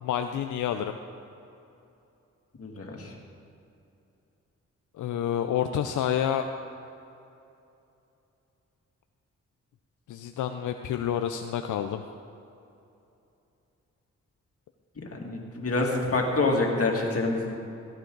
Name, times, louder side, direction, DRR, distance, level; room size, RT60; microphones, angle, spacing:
voice 1, 0.0-1.0 4.9-6.5 10.1-12.0, left 9 dB, 85° left, 7 dB, 0.5 m, -29 dB
voice 2, 2.6-3.1 15.0-17.6, left 2 dB, 50° left, 0 dB, 2.3 m, -27 dB
17.0 x 9.5 x 3.9 m, 2.8 s
cardioid pair, 55°, 30 cm